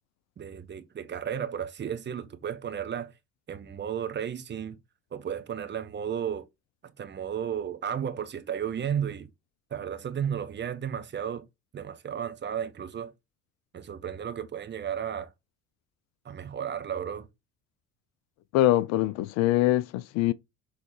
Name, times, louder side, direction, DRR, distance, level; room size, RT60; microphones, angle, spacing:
voice 1, 0.4-3.1 3.5-4.8 5.1-6.5 6.8-9.3 9.7-11.5 11.7-13.1 13.7-15.3 16.2-17.3, right 8 dB, 30° right, 1.1 m, -33 dB
voice 2, 18.5-20.3, left 15 dB, 50° left, 0.5 m, -23 dB
6.3 x 3.6 x 4.6 m
figure-of-eight pair, 60°, 33 cm